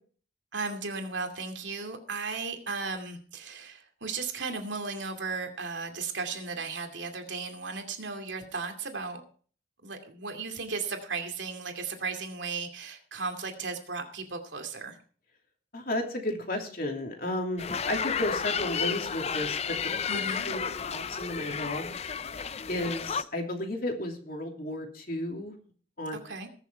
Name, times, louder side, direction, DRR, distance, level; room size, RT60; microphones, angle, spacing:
voice 1, 0.5-9.2 9.8-15.0 20.1-20.5 26.1-26.5, right 4 dB, 75° right, 4 dB, 2.5 m, -35 dB
voice 2, 15.7-19.8 20.1-21.9 22.7-25.6 26.0-26.2, left 1 dB, 50° left, 2 dB, 2.9 m, -33 dB
sound 1, 17.6-23.2, left 6 dB, 35° left, 0.5 m, -32 dB
20.5 x 7.0 x 4.5 m, 0.43 s
head